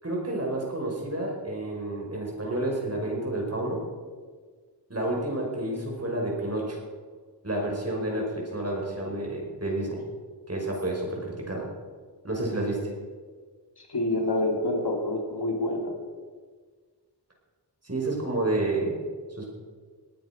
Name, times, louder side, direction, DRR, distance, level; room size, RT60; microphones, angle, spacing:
voice 1, 0.0-3.8 4.9-6.8 7.4-10.0 10.5-11.7 12.2-12.8 17.8-19.0 19.3-19.5, right 2 dB, 35° right, -1 dB, 5.6 m, -30 dB
voice 2, 13.8-16.0, left 1 dB, 65° left, 2 dB, 3.0 m, -27 dB
19.0 x 9.4 x 6.1 m, 1.5 s
cardioid pair, 45°, 42 cm